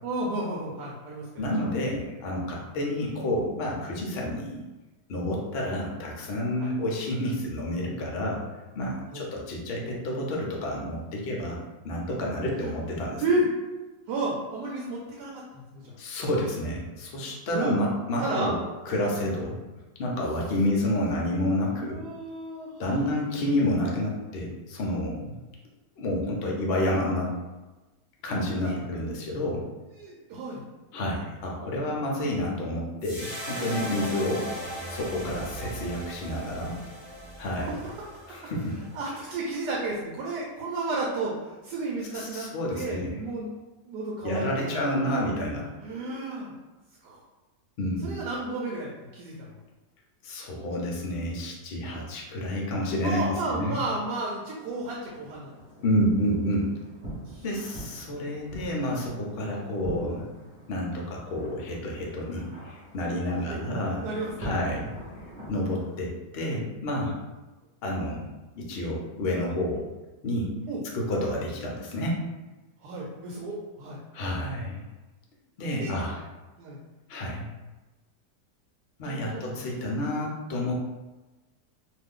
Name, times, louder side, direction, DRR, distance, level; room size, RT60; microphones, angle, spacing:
voice 1, 0.0-1.3 6.6-6.7 9.1-9.3 12.6-12.7 13.2-13.5 14.1-15.9 17.5-17.8 18.2-18.5 21.7-23.1 28.6-28.7 29.9-30.6 33.9-34.0 37.5-37.9 38.9-41.3 41.6-42.5 42.7-43.5 43.8-45.2 45.8-46.5 47.0-47.2 48.0-49.6 53.0-55.5 57.2-57.4 59.5-59.6 63.3-63.6 64.0-64.7 70.7-70.8 72.8-74.0 75.8-75.9 76.6-76.8 79.0-79.5 79.9-80.0, right 2 dB, 80° right, -3 dB, 1.2 m, -32 dB
voice 2, 1.4-4.6 5.1-8.4 8.7-13.2 16.0-18.5 18.9-19.6 20.0-22.0 22.8-25.3 26.0-27.3 28.2-29.7 30.9-34.5 34.9-36.8 37.4-37.7 38.3-38.8 42.1-43.2 44.2-45.7 47.8-48.1 50.2-53.8 55.8-56.7 57.4-60.3 60.7-64.0 64.4-64.9 65.5-67.2 67.8-68.3 68.6-69.9 70.2-70.5 70.9-72.2 74.1-74.8 75.6-76.2 77.1-77.5 79.0-80.7, left 1 dB, 70° left, -2 dB, 0.6 m, -29 dB
sound 1, 33.0-39.4, equal, 20° left, 0.8 m, -38 dB
sound 2, 55.1-66.0, right 1 dB, 30° right, 0.8 m, -44 dB
2.6 x 2.4 x 3.6 m, 1.1 s
omnidirectional pair, 1.8 m